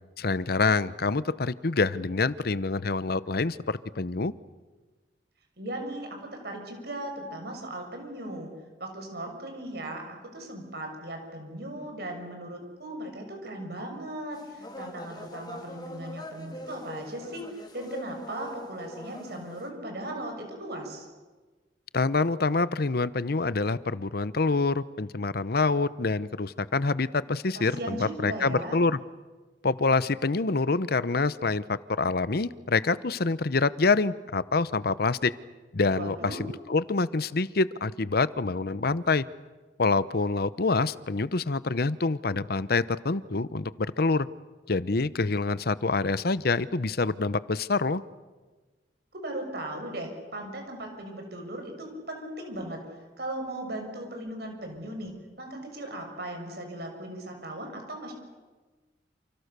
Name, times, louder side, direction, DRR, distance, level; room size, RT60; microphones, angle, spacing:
voice 1, 0.2-4.3 21.9-29.0 29.6-35.3 35.7-36.4 36.7-39.2 39.8-43.7 44.0-44.3 44.7-48.0, left 3 dB, 60° left, 16 dB, 0.8 m, -26 dB
voice 2, 5.6-8.5 8.8-21.1 27.5-28.8 35.9-36.4 49.1-52.8 53.2-55.1 55.4-58.1, right 1 dB, 65° right, 3 dB, 6.3 m, -37 dB
sound 1, 14.3-19.7, left 1 dB, 25° left, 3.4 m, -43 dB
29.5 x 29.0 x 6.8 m, 1.3 s
head